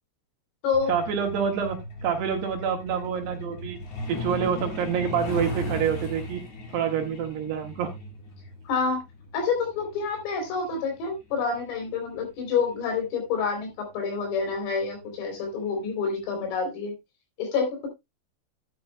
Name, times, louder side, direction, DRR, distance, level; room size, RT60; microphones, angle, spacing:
Truck, 0.7-13.0 14.3-14.4 14.8-15.0 15.4-15.7 16.0-16.1 16.5-16.6, left 1 dB, 50° left, 2.2 m, -37 dB
voice 1, 0.9-1.8 2.0-3.8 4.1-6.4 6.7-7.9, right 8 dB, 65° right, 3.1 m, -27 dB
voice 2, 8.7-9.0 9.3-16.9 17.4-17.9, left 5 dB, 85° left, 6.2 m, -28 dB
12.0 x 9.5 x 2.2 m
omnidirectional pair, 5.7 m